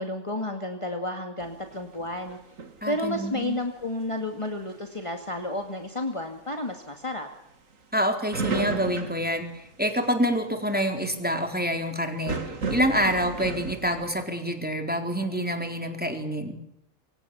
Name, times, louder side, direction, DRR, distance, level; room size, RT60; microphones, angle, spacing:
voice 1, 0.0-2.4 2.8-7.3, left 1 dB, 25° left, 4 dB, 2.3 m, -31 dB
sound 1, 1.4-3.9 4.3-4.8 6.2-6.3 8.3-10.1 12.3-14.2, right 4 dB, 75° right, 2.6 m, -34 dB
voice 2, 2.8-3.6 7.9-12.4 12.7-16.6, equal, 5° right, 4 dB, 4.2 m, -27 dB
28.0 x 25.0 x 7.2 m, 0.78 s
omnidirectional pair, 1.4 m